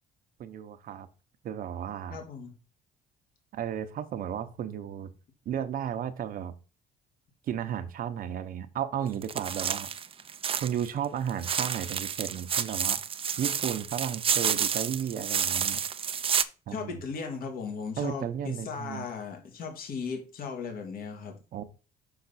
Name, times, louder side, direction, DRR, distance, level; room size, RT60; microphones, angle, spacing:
voice 1, 0.4-1.1 1.4-2.2 3.5-5.1 5.5-6.5 7.5-9.9 10.6-13.0 13.4-15.8 16.7-17.0 18.0-19.1 21.5-21.6, right 9 dB, 60° right, 0.9 m, -33 dB
voice 2, 2.1-2.5 16.7-21.4, left 5 dB, 60° left, 2.1 m, -37 dB
sound 1, 9.2-10.9 11.3-16.4, right 7 dB, 35° right, 0.6 m, -30 dB
5.8 x 5.7 x 4.1 m
cardioid pair, 110°, 17 cm